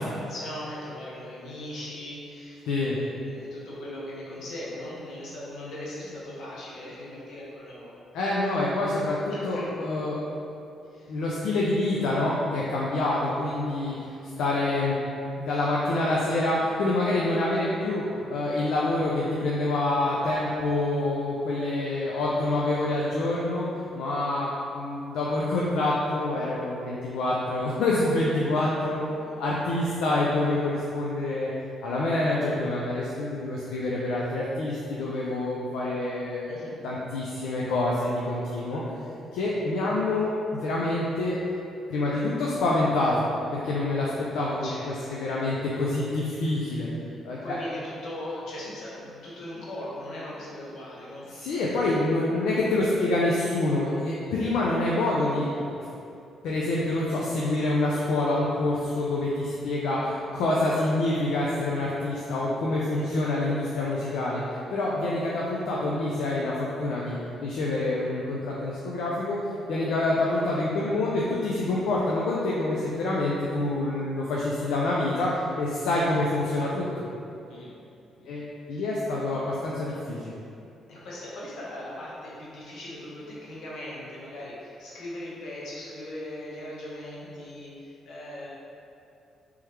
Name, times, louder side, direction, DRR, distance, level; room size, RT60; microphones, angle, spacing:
voice 1, 0.0-8.0 9.3-9.7 10.9-11.1 36.4-36.8 44.6-45.2 47.4-51.6 52.9-53.1 62.9-63.4 70.0-70.1 77.5-77.8 78.2-78.5 80.9-88.5, left 1 dB, 70° left, -6 dB, 1.0 m, -39 dB
voice 2, 2.7-3.0 8.1-10.2 11.1-14.1 14.4-15.0 15.4-23.7 24.0-29.0 29.4-31.5 31.8-38.8 39.3-41.4 41.9-43.2 43.5-44.7 45.1-46.9 47.2-47.6 51.3-55.5 55.7-55.9 56.4-69.4 69.7-76.9 78.3-80.4, left 2 dB, 85° left, -5 dB, 0.4 m, -27 dB
3.4 x 3.2 x 3.0 m, 2.7 s
cardioid pair, 90°, 0 cm